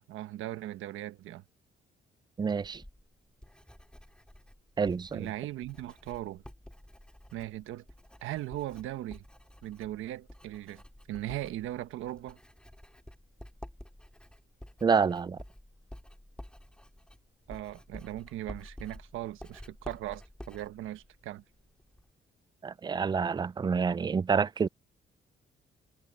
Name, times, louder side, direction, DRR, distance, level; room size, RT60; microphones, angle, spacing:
voice 1, 0.0-1.4 5.1-6.4 7.3-7.8 8.2-9.2 9.6-10.8 11.1-12.4 17.5-21.4, right 14 dB, 90° right, 1.2 m, -38 dB
voice 2, 2.4-2.8 4.8-5.3 14.8-15.4 22.6-24.7, right 5 dB, 20° right, 0.4 m, -28 dB
Writing, 2.6-22.1, left 1 dB, 5° left, 4.9 m, -51 dB
cardioid pair, 90°, 20 cm